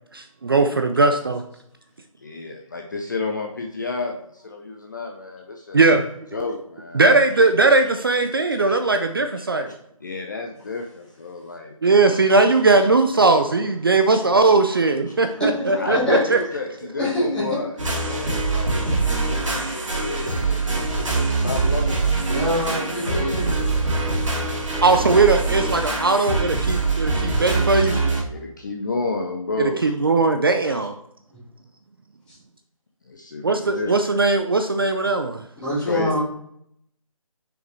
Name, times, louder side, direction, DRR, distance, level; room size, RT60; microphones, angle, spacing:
voice 1, 0.1-1.4 5.7-6.1 6.9-9.7 11.8-16.4 18.3-18.4 24.8-28.0 29.8-30.9 33.4-35.4, right 3 dB, 40° right, 7 dB, 0.4 m, -19 dB
voice 2, 2.2-5.9 6.3-7.2 10.0-11.8 12.0-12.7 15.1-15.2 15.7-17.8 18.0-22.1 23.0-23.4 25.0-25.2 27.5-27.6 27.9-28.0 28.3-30.1 30.6-30.9 33.1-34.0 35.9-36.2, left 3 dB, 35° left, 2 dB, 0.5 m, -31 dB
voice 3, 15.4-16.2 17.0-17.6 22.3-23.5 31.3-31.4 32.3-32.4 35.6-36.2, left 1 dB, 5° left, -11 dB, 1.9 m, -24 dB
sound 1, 17.8-28.2, right 3 dB, 65° right, 2.3 m, -23 dB
6.3 x 4.9 x 3.2 m, 0.71 s
figure-of-eight pair, 155°, 18 cm